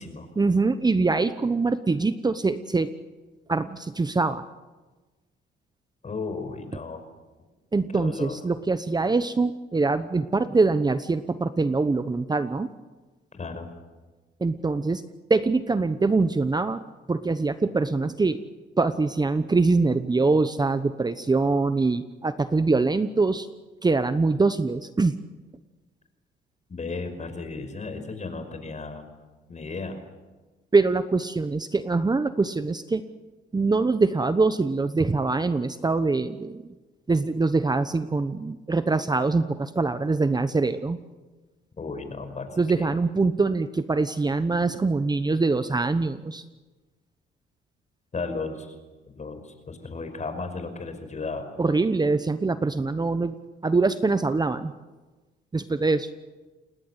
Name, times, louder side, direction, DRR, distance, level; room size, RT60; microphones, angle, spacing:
voice 1, 0.4-2.9 3.5-4.5 7.7-12.7 14.4-15.0 15.3-16.8 17.1-18.4 18.8-23.5 23.8-25.2 30.7-33.0 33.5-36.7 37.1-41.0 42.6-46.4 51.6-53.4 53.6-54.7 55.5-56.1, right 3 dB, 20° right, 11 dB, 1.0 m, -23 dB
voice 2, 6.0-7.0 7.9-8.4 13.3-13.7 26.7-29.1 29.5-30.0 41.8-42.9 48.1-48.7 49.1-51.5, left 4 dB, 35° left, 8 dB, 5.5 m, -34 dB
29.0 x 20.5 x 8.2 m, 1.2 s
cardioid pair, 90°, 20 cm